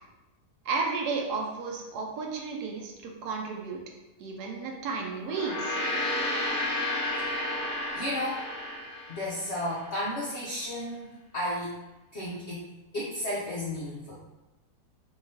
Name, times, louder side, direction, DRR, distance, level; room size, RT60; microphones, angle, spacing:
voice 1, 0.7-3.8 4.2-5.8, right 4 dB, 70° right, 0 dB, 1.1 m, -33 dB
Gong, 5.2-9.8, left 1 dB, 50° left, 1.0 m, -32 dB
voice 2, 7.2-7.5 7.9-8.4 9.1-11.7 12.1-12.6 12.9-14.1, left 1 dB, 70° left, -6 dB, 0.6 m, -33 dB
3.7 x 2.9 x 2.7 m, 1.0 s
omnidirectional pair, 1.8 m